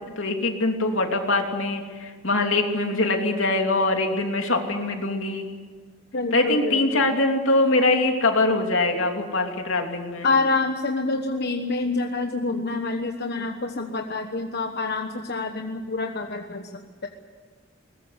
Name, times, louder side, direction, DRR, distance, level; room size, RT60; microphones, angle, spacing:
voice 1, 0.2-5.5 6.3-10.3, left 2 dB, 80° left, 3 dB, 3.1 m, -23 dB
voice 2, 6.1-7.1 10.2-17.1, left 3 dB, 55° left, 4 dB, 1.3 m, -27 dB
21.5 x 20.5 x 8.2 m, 1.5 s
head